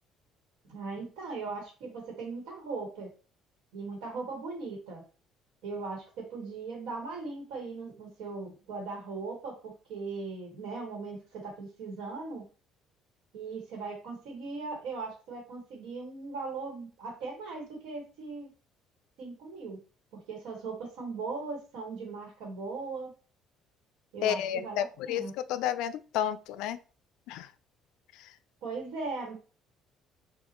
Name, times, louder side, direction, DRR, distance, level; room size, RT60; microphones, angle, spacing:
voice 1, 0.7-3.1 3.7-5.0 5.6-12.4 13.3-18.5 19.2-19.8 20.1-23.1 24.1-25.3 28.6-29.3, right 4 dB, 80° right, 0 dB, 1.5 m, -39 dB
voice 2, 24.2-25.2 25.5-26.8 27.3-27.5 28.2-28.3, left 10 dB, 80° left, 13 dB, 0.3 m, -31 dB
5.5 x 2.4 x 2.9 m, 0.36 s
cardioid pair, 170°, 0 cm